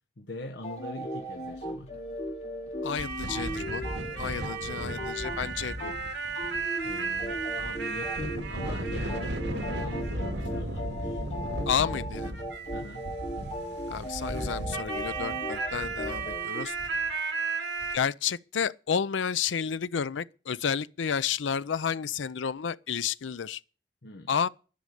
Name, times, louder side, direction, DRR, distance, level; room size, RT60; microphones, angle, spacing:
voice 1, 0.2-1.9 6.8-11.2 12.7-13.1 24.0-24.3, left 2 dB, 75° left, 1.1 m, -42 dB
sound 1, 0.6-6.0 6.3-16.7, equal, 35° left, 2.6 m, -37 dB
voice 2, 2.8-3.8 4.2-5.9 11.7-12.3 13.9-16.8 17.9-23.6 24.3-24.5, left 7 dB, 90° left, 0.5 m, -31 dB
sound 2, 3.0-18.0, right 3 dB, 75° right, 2.0 m, -34 dB
11.5 x 6.5 x 9.2 m
head